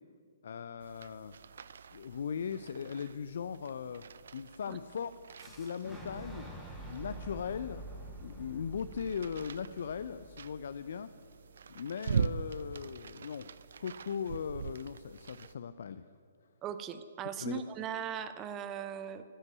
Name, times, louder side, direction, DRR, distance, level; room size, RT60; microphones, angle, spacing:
voice 1, 0.4-1.4 1.9-4.0 4.3-6.6 6.9-7.9 8.1-11.1 11.7-13.5 13.8-16.1 17.4-17.6, left 7 dB, 60° left, 13 dB, 0.4 m, -39 dB
sound 1, 0.8-15.5, right 6 dB, 60° right, 0.3 m, -42 dB
Fire / Explosion, 5.4-11.3, right 1 dB, ahead, 2.0 m, -47 dB
voice 2, 16.6-19.2, right 8 dB, 25° right, 12 dB, 0.7 m, -39 dB
14.5 x 5.3 x 9.4 m, 2.4 s
figure-of-eight pair, 130°, 0 cm